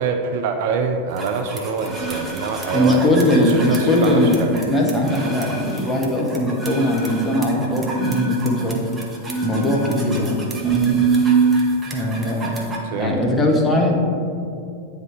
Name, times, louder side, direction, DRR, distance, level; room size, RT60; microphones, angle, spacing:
voice 1, 0.0-4.5 12.9-13.2, right 5 dB, 50° right, 6 dB, 0.4 m, -24 dB
sound 1, 1.2-12.8, right 5 dB, 15° right, 1.0 m, -25 dB
voice 2, 2.7-8.8 9.4-10.4 10.6-11.0 11.9-12.6 12.9-13.9, left 1 dB, 10° left, -1 dB, 1.0 m, -20 dB
9.3 x 3.6 x 3.4 m, 2.5 s
figure-of-eight pair, 90°, 0 cm